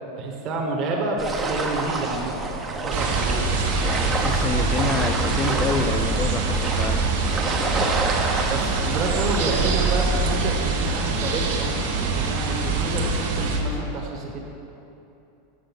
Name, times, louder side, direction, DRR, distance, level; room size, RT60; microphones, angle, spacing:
voice 1, 0.2-2.3 2.7-3.5 8.5-14.4, right 3 dB, 40° right, -2 dB, 1.3 m, -29 dB
sound 1, 1.2-10.4, right 3 dB, 20° right, 0.9 m, -29 dB
sound 2, 2.9-13.6, right 3 dB, 75° right, 1.2 m, -24 dB
voice 2, 3.8-7.1, left 5 dB, 25° left, 9 dB, 0.5 m, -28 dB
7.8 x 6.3 x 6.0 m, 2.8 s
supercardioid pair, 125°, 0 cm